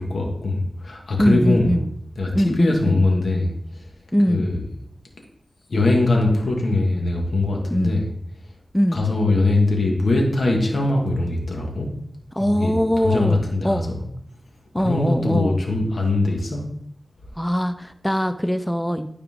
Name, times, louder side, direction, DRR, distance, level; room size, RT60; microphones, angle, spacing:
voice 1, 0.1-1.7 2.2-3.5 4.3-4.6 5.7-8.0 8.9-11.9 12.4-12.7 13.0-13.8 14.8-16.6, left 2 dB, 75° left, 0 dB, 2.1 m, -21 dB
voice 2, 1.2-1.9 2.3-3.0 4.1-4.4 7.7-7.9 8.7-9.0 12.3-13.9 14.7-15.6 17.4-19.1, equal, 5° left, 9 dB, 0.5 m, -21 dB
12.5 x 4.9 x 3.7 m, 0.72 s
wide cardioid pair, 70°, 0 cm